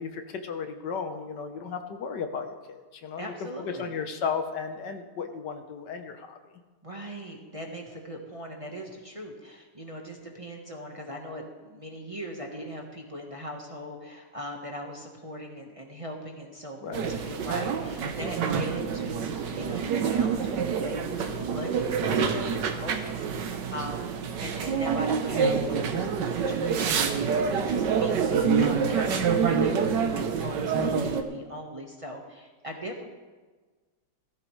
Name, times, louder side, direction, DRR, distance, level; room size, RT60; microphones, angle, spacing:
voice 1, 0.0-2.5 2.9-3.3 3.6-6.6 16.8-17.0, left 6 dB, 75° left, 6 dB, 1.7 m, -34 dB
voice 2, 3.2-3.9 6.8-24.1 24.4-33.0, equal, 20° right, 0 dB, 1.2 m, -40 dB
sound 1, 16.9-31.2, right 6 dB, 80° right, 1.6 m, -27 dB
16.5 x 14.5 x 3.2 m, 1.4 s
omnidirectional pair, 1.9 m